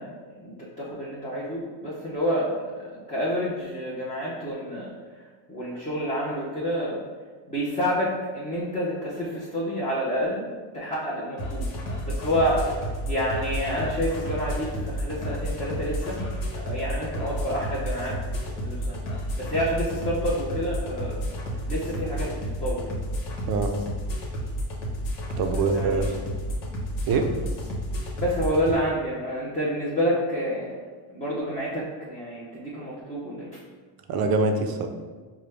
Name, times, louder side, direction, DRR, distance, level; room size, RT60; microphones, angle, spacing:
voice 1, 0.0-4.9 5.5-7.0 7.5-11.7 12.0-16.2 16.5-18.2 18.6-19.0 19.4-21.3 21.7-22.9 25.3-26.2 28.2-30.8 31.1-33.5, equal, 15° left, -9 dB, 0.8 m, -29 dB
sound 1, 11.4-28.7, equal, 80° left, 1.2 m, -31 dB
voice 2, 25.4-26.1 27.1-27.3 34.1-34.9, right 4 dB, 50° right, 6 dB, 0.5 m, -24 dB
4.9 x 2.3 x 3.3 m, 1.4 s
cardioid pair, 120°, 50 cm